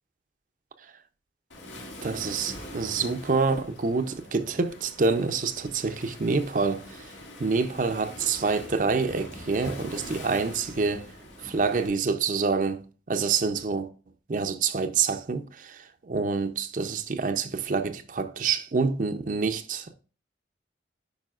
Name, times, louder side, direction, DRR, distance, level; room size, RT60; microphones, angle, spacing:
Waves surf, 1.5-11.9, left 1 dB, 85° left, 2.1 m, -43 dB
voice 1, 2.0-7.0 7.4-11.0 11.4-13.9 14.3-20.0, right 4 dB, 45° right, 0.5 m, -27 dB
8.9 x 5.5 x 2.4 m
head